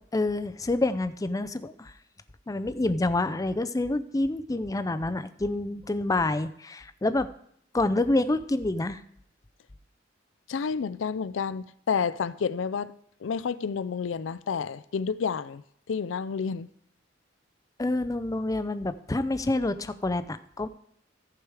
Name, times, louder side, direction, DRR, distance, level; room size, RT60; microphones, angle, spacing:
voice 1, 0.1-1.9 2.5-7.3 7.7-9.0 17.8-20.7, left 2 dB, 20° left, 0.4 m, -27 dB
voice 2, 10.5-12.9 13.2-15.6 15.9-16.7, left 6 dB, 75° left, 0.4 m, -30 dB
14.5 x 4.9 x 4.8 m
head